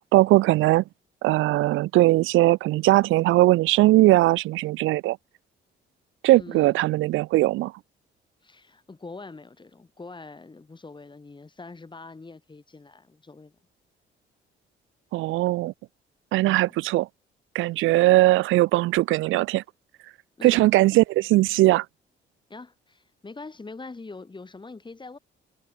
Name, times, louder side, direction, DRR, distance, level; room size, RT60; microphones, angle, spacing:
voice 1, 0.1-0.8 1.2-5.2 6.2-7.7 15.1-15.7 16.3-17.1 17.5-19.6 20.4-21.8, right 18 dB, 90° right, 0.6 m, -20 dB
voice 2, 6.3-6.8 8.4-13.5 16.4-16.8 20.4-20.7 22.5-25.2, left 3 dB, 25° left, 6.2 m, -43 dB
cardioid pair, 90°, 20 cm